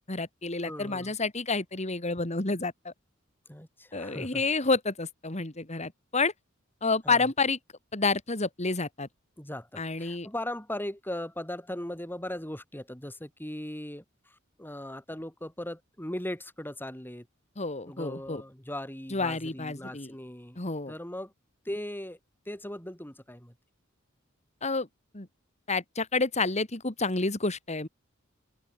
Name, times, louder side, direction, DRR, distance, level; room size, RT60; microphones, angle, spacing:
voice 1, 0.0-2.9 3.9-6.3 6.8-7.6 7.9-9.1 9.8-10.3 17.6-18.4 19.1-20.1 20.6-20.9 24.6-24.9 25.1-25.3 25.7-27.9, left 3 dB, 35° left, 2.5 m, -29 dB
voice 2, 0.6-1.1 3.5-4.4 7.0-7.3 9.4-17.3 17.9-21.3 21.6-22.2 22.5-23.5, left 1 dB, 10° left, 4.1 m, -38 dB
head